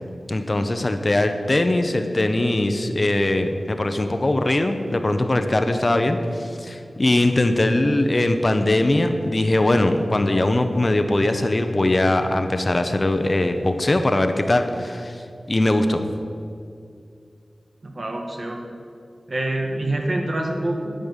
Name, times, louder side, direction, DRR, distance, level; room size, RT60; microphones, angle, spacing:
voice 1, 0.3-16.0, left 1 dB, 40° left, 7 dB, 0.8 m, -21 dB
voice 2, 17.8-18.6 19.3-20.9, right 1 dB, 55° right, 1 dB, 1.8 m, -26 dB
12.5 x 5.4 x 8.2 m, 2.3 s
wide cardioid pair, 65°, 0 cm